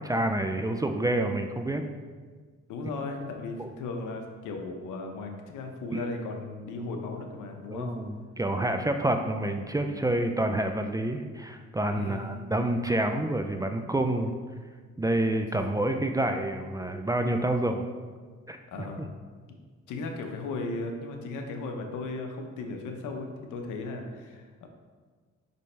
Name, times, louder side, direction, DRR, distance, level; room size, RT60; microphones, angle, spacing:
voice 1, 0.0-1.8 3.6-3.7 5.9-6.1 7.7-14.3 15.0-17.8 18.5-18.6, right 1 dB, 10° right, 5 dB, 0.4 m, -28 dB
voice 2, 2.7-7.9 11.9-12.4 15.6-15.7 18.7-19.1 19.5-19.6 19.9-24.7, left 3 dB, 85° left, 4 dB, 0.8 m, -36 dB
5.3 x 5.3 x 3.3 m, 1.5 s
cardioid pair, 90°, 30 cm